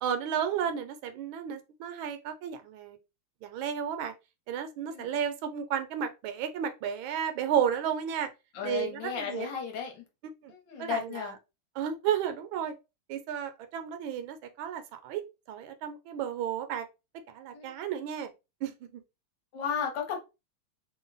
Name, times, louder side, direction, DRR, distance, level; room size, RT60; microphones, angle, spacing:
voice 1, 0.0-3.0 3.4-4.1 4.5-8.3 8.6-9.5 10.4-10.5 10.8-11.3 11.8-12.7 13.1-15.2 15.5-16.9 17.3-18.3 18.6-19.0, right 8 dB, 80° right, 1.3 m, -32 dB
voice 2, 8.5-10.0 10.5-11.3 17.5-17.7 19.5-20.2, left 8 dB, 65° left, 1.5 m, -34 dB
3.5 x 2.2 x 3.9 m
omnidirectional pair, 2.3 m